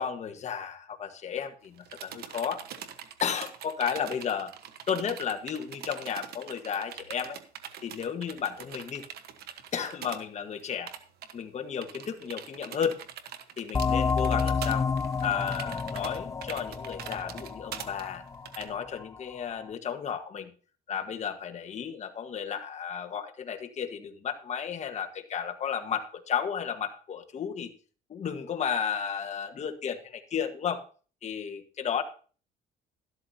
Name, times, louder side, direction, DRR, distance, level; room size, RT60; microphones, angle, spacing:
voice 1, 0.0-2.6 3.2-4.5 4.9-7.4 7.8-9.0 9.7-10.9 11.3-13.0 13.6-14.9 15.2-18.2 18.5-20.5 20.9-27.7 28.1-30.8 31.2-32.0, left 7 dB, 40° left, 6 dB, 1.4 m, -33 dB
sound 1, 1.6-10.2 10.5-10.6 10.9-11.3 11.8-18.7, right 9 dB, 70° right, 1.2 m, -43 dB
sound 2, 13.7-19.0, left 5 dB, 20° left, 0.4 m, -30 dB
12.5 x 12.5 x 2.8 m, 0.39 s
cardioid pair, 110°, 17 cm